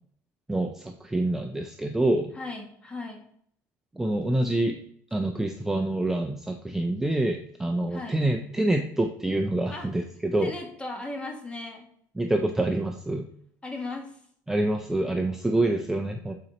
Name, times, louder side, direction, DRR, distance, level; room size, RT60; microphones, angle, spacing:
voice 1, 0.5-2.3 3.9-4.8 5.1-10.5 12.2-13.3 14.5-16.3, right 1 dB, 5° right, 3 dB, 0.4 m, -26 dB
voice 2, 2.3-3.2 7.9-8.2 9.7-9.9 10.4-11.9 13.6-14.2, left 2 dB, 15° left, 3 dB, 1.2 m, -37 dB
7.8 x 4.2 x 2.9 m, 0.65 s
cardioid pair, 130°, 7 cm